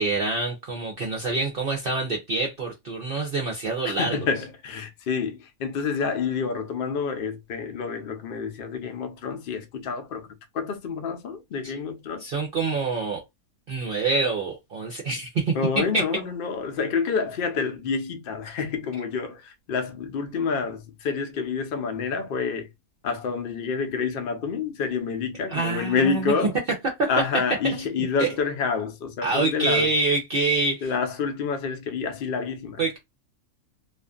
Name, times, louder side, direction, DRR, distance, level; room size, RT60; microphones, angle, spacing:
voice 1, 0.0-4.2 11.6-11.7 12.2-13.2 13.7-16.0 25.5-26.3 27.0-27.1 27.7-28.3 29.2-30.9 32.8-33.0, right 3 dB, 60° right, 0.6 m, -26 dB
voice 2, 3.8-12.3 15.5-22.7 23.0-26.5 27.1-29.9 30.8-33.0, left 5 dB, 60° left, 0.5 m, -28 dB
2.5 x 2.4 x 2.3 m
omnidirectional pair, 1.5 m